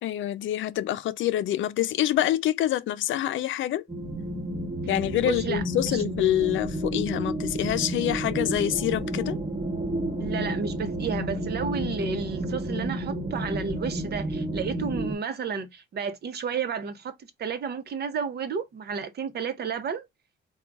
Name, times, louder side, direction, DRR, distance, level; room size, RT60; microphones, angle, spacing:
voice 1, 0.0-3.8 4.9-9.4, left 13 dB, 75° left, 0.5 m, -26 dB
sound 1, 3.9-15.1, right 1 dB, 25° right, 1.0 m, -31 dB
voice 2, 5.2-6.0 10.2-20.1, right 6 dB, 55° right, 0.8 m, -32 dB
3.9 x 2.3 x 4.6 m
cardioid pair, 90°, 20 cm